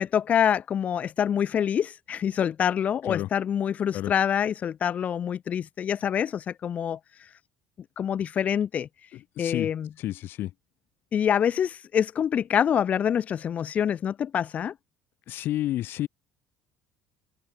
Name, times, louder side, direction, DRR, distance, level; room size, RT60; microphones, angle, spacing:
voice 1, 0.0-7.0 8.0-8.9 9.4-9.9 11.1-14.7, left 8 dB, 30° left, 5.8 m, -26 dB
voice 2, 9.4-9.7 10.0-10.5 15.3-16.1, left 14 dB, 45° left, 6.1 m, -30 dB
cardioid pair, 175°, 5 cm